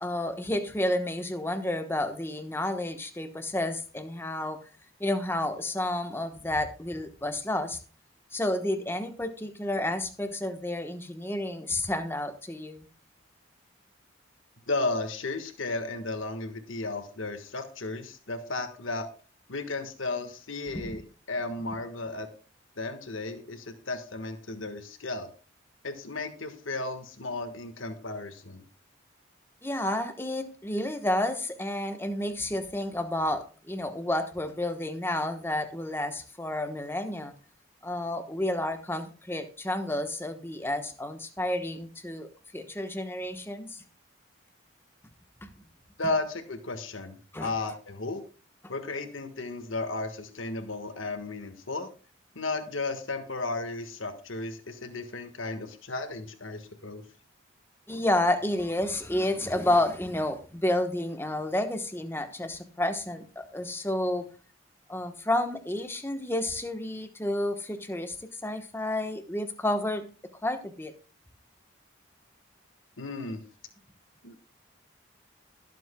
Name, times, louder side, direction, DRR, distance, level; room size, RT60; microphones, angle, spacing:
voice 1, 0.0-4.6 5.0-7.8 8.3-12.9 20.7-21.0 29.6-37.3 37.8-43.8 45.4-45.5 47.3-47.5 57.9-64.3 64.9-70.1 70.4-70.9, left 1 dB, 10° left, 7 dB, 1.1 m, -30 dB
voice 2, 14.7-19.1 19.5-21.0 21.3-22.3 22.8-25.3 25.8-28.6 46.0-48.2 48.7-51.9 52.3-57.0 73.0-73.4 74.2-74.3, left 2 dB, 90° left, 7 dB, 1.5 m, -34 dB
21.0 x 7.6 x 2.2 m, 0.37 s
head